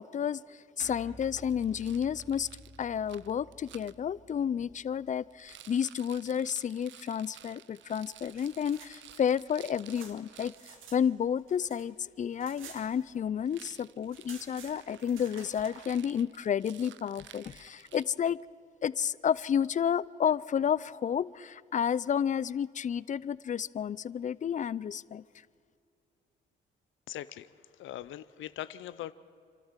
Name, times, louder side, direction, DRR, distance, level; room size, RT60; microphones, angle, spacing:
voice 1, 0.0-2.5 2.8-18.4 18.8-25.2, left 8 dB, 40° left, 20 dB, 0.5 m, -31 dB
sound 1, 0.8-5.5, right 1 dB, 50° right, 6.6 m, -53 dB
Rattle, 1.4-3.9 5.3-10.7 13.4-18.4, right 12 dB, 70° right, 0.6 m, -54 dB
sound 2, 8.1-11.0 11.3-13.5 13.7-13.8 14.0-15.9, right 6 dB, 85° right, 2.3 m, -52 dB
voice 2, 27.1-27.5 27.7-29.1, left 13 dB, 80° left, 14 dB, 0.7 m, -41 dB
28.0 x 12.5 x 7.4 m, 2.4 s
cardioid pair, 90°, 20 cm